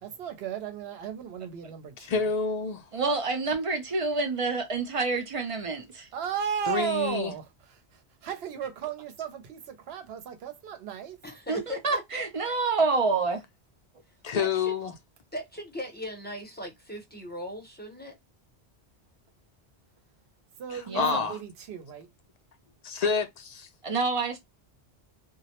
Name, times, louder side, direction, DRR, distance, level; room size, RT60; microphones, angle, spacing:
voice 1, 0.0-2.3 6.1-7.5 7.9-11.2 20.6-22.1, right 9 dB, 70° right, 0.8 m, -35 dB
voice 2, 2.0-2.8 6.7-7.3 14.2-14.9 20.9-21.4 22.8-23.7, left 5 dB, 55° left, 0.4 m, -28 dB
voice 3, 2.9-6.1 11.5-13.4 20.9-21.3 23.8-24.4, right 4 dB, 50° right, 0.4 m, -28 dB
voice 4, 11.2-12.3 14.3-14.8 15.3-18.2, left 1 dB, 10° left, 0.6 m, -39 dB
2.2 x 2.0 x 2.8 m
omnidirectional pair, 1.1 m